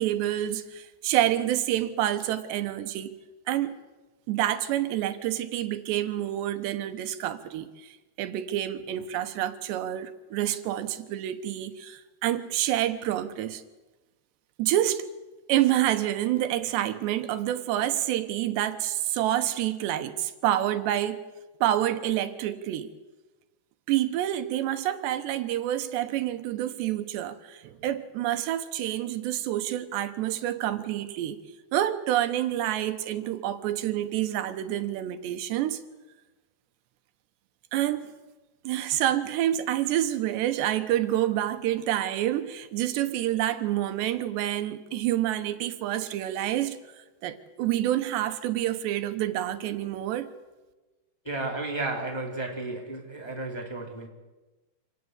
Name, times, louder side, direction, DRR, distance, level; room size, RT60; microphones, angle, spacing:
voice 1, 0.0-3.1 3.5-3.8 4.3-7.9 8.2-13.6 14.6-15.0 15.5-21.2 21.6-22.9 23.9-31.4 31.7-35.8 37.7-38.1 38.6-46.8 47.2-50.3, right 12 dB, 85° right, 3.3 m, -28 dB
voice 2, 51.2-54.1, right 2 dB, 5° left, 2.8 m, -33 dB
26.5 x 18.5 x 8.1 m
omnidirectional pair, 4.9 m